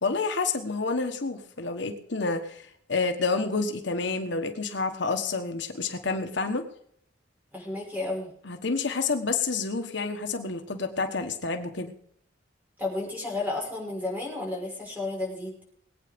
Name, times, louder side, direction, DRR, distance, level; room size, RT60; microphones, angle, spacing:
voice 1, 0.0-6.6 8.4-11.9, left 4 dB, 60° left, 6 dB, 1.3 m, -29 dB
voice 2, 7.5-8.3 12.8-15.5, left 2 dB, 10° right, -1 dB, 5.6 m, -32 dB
20.5 x 8.9 x 5.2 m, 0.66 s
head